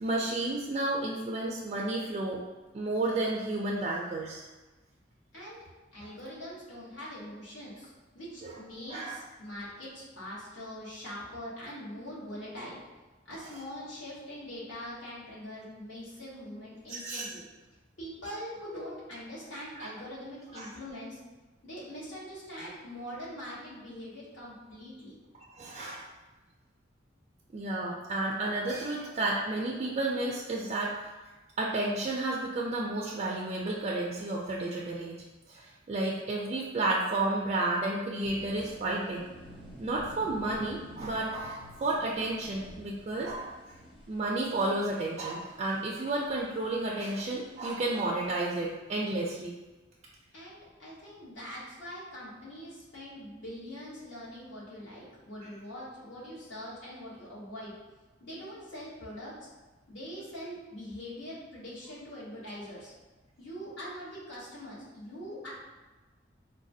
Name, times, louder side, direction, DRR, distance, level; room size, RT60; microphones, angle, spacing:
voice 1, 0.0-2.4 2.7-4.4 8.4-8.5 8.9-9.2 16.9-17.3 19.8-19.9 20.5-20.7 25.3-26.1 27.5-30.9 31.6-35.1 35.5-39.3 39.8-43.6 44.1-49.6 55.4-55.5, right 2 dB, 35° right, -3 dB, 0.3 m, -32 dB
voice 2, 5.9-12.8 13.2-17.4 18.0-21.2 21.6-25.2 50.3-57.8 58.2-59.5 59.9-62.9 63.4-65.5, equal, 70° left, -7 dB, 1.2 m, -43 dB
sound 1, 38.2-48.7, equal, 30° left, 0.8 m, -51 dB
4.0 x 2.1 x 2.6 m, 1.2 s
head